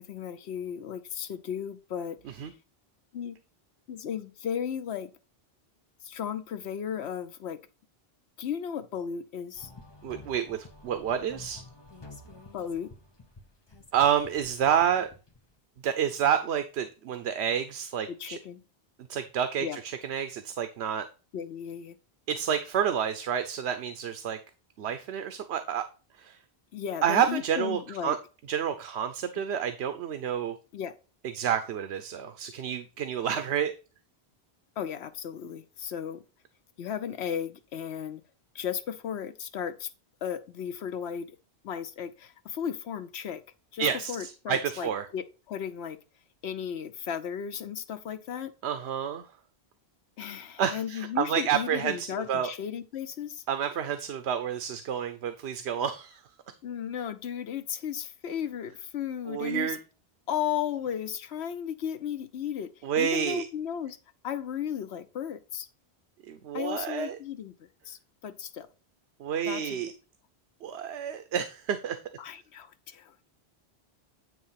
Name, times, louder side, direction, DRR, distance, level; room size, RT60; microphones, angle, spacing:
voice 1, 0.0-2.2 3.1-3.4 3.9-5.1 6.0-7.6 8.4-9.7 12.5-12.9 18.2-18.6 19.6-19.8 21.3-22.0 26.7-28.1 30.7-30.9 34.8-36.2 36.8-38.2 38.5-39.9 40.2-41.3 41.6-43.4 43.7-46.0 46.4-48.5 50.2-53.4 56.6-59.8 60.3-62.7 63.0-64.0 64.2-65.7 66.5-68.0 68.2-68.7 69.4-69.8 72.2-73.1, left 8 dB, 85° left, 1.0 m, -35 dB
sound 1, 9.6-15.6, left 2 dB, 25° left, 0.9 m, -50 dB
voice 2, 10.0-11.6 13.9-15.1 15.8-18.4 19.1-21.1 22.3-24.4 24.8-25.8 26.2-26.4 27.0-28.2 28.5-30.6 31.3-33.7 43.8-45.1 48.6-49.3 50.6-52.5 53.5-56.2 59.3-59.8 62.8-63.5 66.3-67.2 69.2-69.9 70.6-72.0, right 8 dB, 85° right, 0.9 m, -29 dB
9.2 x 3.2 x 5.6 m
omnidirectional pair, 1.1 m